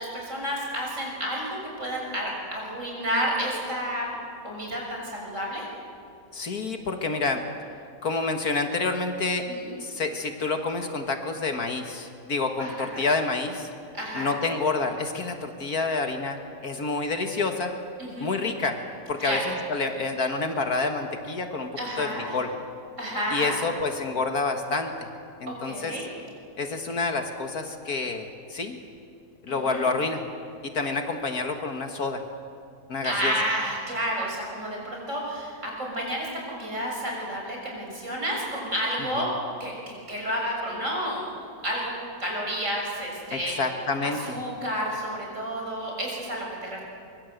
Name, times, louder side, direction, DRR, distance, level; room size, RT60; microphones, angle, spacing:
voice 1, 0.0-4.1 4.4-5.7 9.5-9.7 12.6-13.0 13.9-14.3 18.0-18.3 19.2-19.4 21.8-22.4 23.0-23.5 25.5-26.1 29.5-29.9 33.0-39.3 39.6-41.3 41.6-41.9 42.2-43.5 44.0-46.8, equal, 45° right, -2 dB, 7.0 m, -30 dB
voice 2, 6.3-7.4 8.0-9.5 9.8-13.7 14.1-17.7 18.2-18.8 19.1-21.7 22.0-22.5 23.3-25.1 25.4-26.0 26.6-28.8 29.4-30.2 30.6-32.2 32.9-33.3 39.2-39.3 43.3-44.4, left 3 dB, 60° left, 5 dB, 2.0 m, -28 dB
24.0 x 23.5 x 8.0 m, 2.4 s
omnidirectional pair, 1.8 m